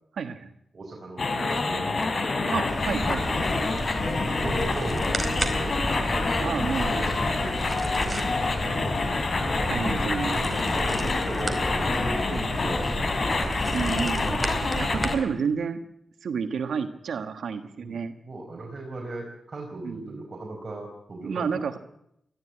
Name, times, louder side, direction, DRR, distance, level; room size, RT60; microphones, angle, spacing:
voice 1, 0.2-0.5 2.5-3.6 6.4-6.9 9.7-10.4 12.3-12.4 13.7-15.8 16.2-18.1 19.8-20.2 21.2-21.8, right 6 dB, 90° right, 8 dB, 1.4 m, -30 dB
voice 2, 0.7-2.5 3.9-6.4 6.9-8.2 8.6-9.2 10.2-13.1 13.5-14.1 17.8-21.8, right 2 dB, 40° right, -1 dB, 4.9 m, -38 dB
sound 1, 1.2-15.2, left 3 dB, 50° left, 3.7 m, -27 dB
sound 2, 2.7-15.2, right 1 dB, 20° right, 4.1 m, -32 dB
20.5 x 14.5 x 9.6 m, 0.77 s
cardioid pair, 70°, 0 cm